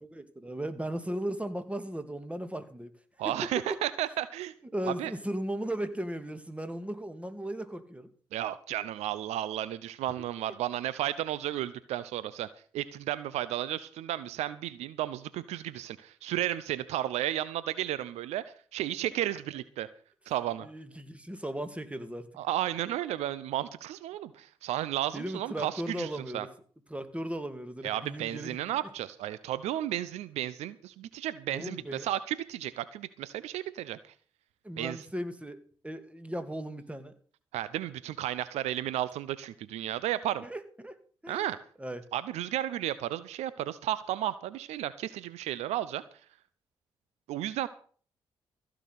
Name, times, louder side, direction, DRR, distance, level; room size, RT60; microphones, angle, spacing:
voice 1, 0.0-2.9 3.2-3.5 4.7-8.1 20.6-22.3 25.1-26.5 26.9-28.6 31.5-32.1 34.6-37.1 40.4-41.0 41.2-41.5 41.8-42.0, right 1 dB, 10° right, 9 dB, 2.6 m, -37 dB
voice 2, 3.2-4.5 4.9-5.1 8.3-12.5 12.7-18.4 18.7-19.9 20.3-20.7 22.4-26.5 27.8-34.1 34.8-35.0 37.5-40.4 41.3-41.6 42.1-46.0 47.3-47.7, right 13 dB, 80° right, 16 dB, 0.7 m, -33 dB
15.5 x 6.2 x 8.4 m, 0.44 s
supercardioid pair, 45°, 11 cm